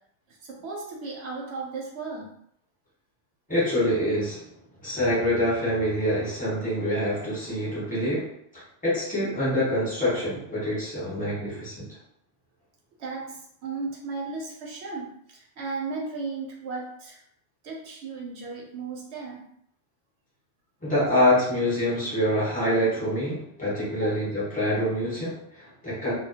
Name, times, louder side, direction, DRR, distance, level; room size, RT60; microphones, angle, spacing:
voice 1, 0.3-2.3 13.0-17.2 17.6-19.4 24.0-24.1, right 4 dB, 70° right, -1 dB, 0.8 m, -35 dB
voice 2, 3.5-4.5 4.8-11.9 20.8-26.1, equal, 10° left, -8 dB, 0.9 m, -26 dB
2.2 x 2.1 x 2.7 m, 0.71 s
omnidirectional pair, 1.2 m